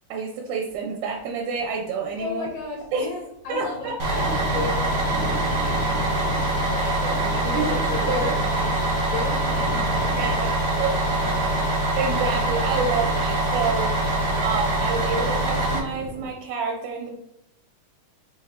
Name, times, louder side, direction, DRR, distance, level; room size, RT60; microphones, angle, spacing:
voice 1, 0.1-2.5 2.9-3.1 3.5-3.9 6.8-7.2 7.5-7.7 8.0-8.4 10.2-10.5 10.8-10.9 12.0-14.0 14.4-17.2, right 4 dB, 80° right, 1 dB, 1.9 m, -28 dB
Thunder, 0.7-0.9 1.2-1.3 1.5-3.1 3.3-16.3, equal, 15° right, 0.7 m, -38 dB
voice 2, 2.2-11.6, left 3 dB, 75° left, -2 dB, 2.0 m, -35 dB
Bus, 4.0-15.8, right 1 dB, 65° right, 1.1 m, -24 dB
5.9 x 3.0 x 2.8 m, 0.83 s
omnidirectional pair, 3.5 m